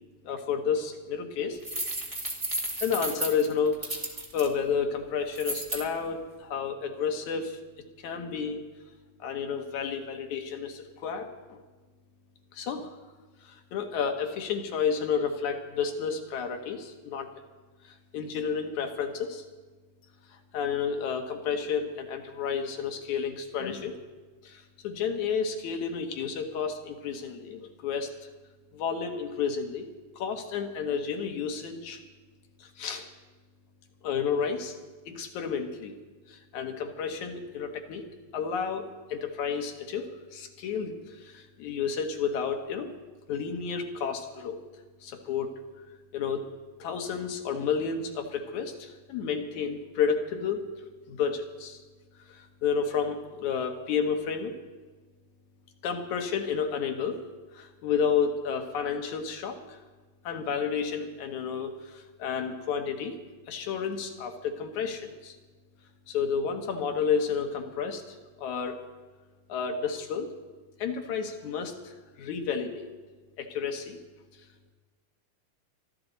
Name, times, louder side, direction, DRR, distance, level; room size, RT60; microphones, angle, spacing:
voice 1, 0.2-1.6 2.8-7.6 8.0-8.6 9.2-11.6 12.5-13.0 13.4-17.3 17.8-19.4 20.5-24.0 24.4-28.1 28.7-29.9 30.2-32.0 32.6-33.1 34.0-34.8 35.1-35.9 36.3-38.0 38.3-42.9 43.3-44.6 45.0-45.6 46.1-46.5 46.8-50.6 51.1-51.8 52.3-54.5 55.8-57.2 57.5-59.8 60.2-63.2 63.5-65.4 66.1-68.8 69.5-70.3 70.8-72.9 73.4-74.0, left 6 dB, 75° left, 4 dB, 2.8 m, -31 dB
sound 1, 1.6-4.5 5.3-5.8, right 1 dB, 15° right, 1.4 m, -33 dB
24.5 x 13.0 x 4.1 m, 1.3 s
omnidirectional pair, 3.5 m